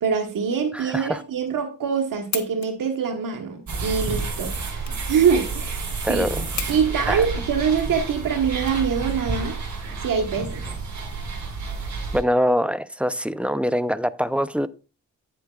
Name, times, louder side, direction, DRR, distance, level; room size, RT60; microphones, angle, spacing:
voice 1, 0.0-6.3 6.7-9.6 10.0-10.6, right 6 dB, 75° right, 1.2 m, -24 dB
voice 2, 0.7-1.2 6.0-6.4 7.1-7.3 12.1-14.7, equal, 5° right, 0.5 m, -23 dB
sound 1, 2.3-9.4, left 7 dB, 55° left, 1.0 m, -38 dB
sound 2, 3.7-12.2, right 4 dB, 55° right, 3.9 m, -30 dB
9.1 x 8.4 x 2.3 m
cardioid pair, 60°, 33 cm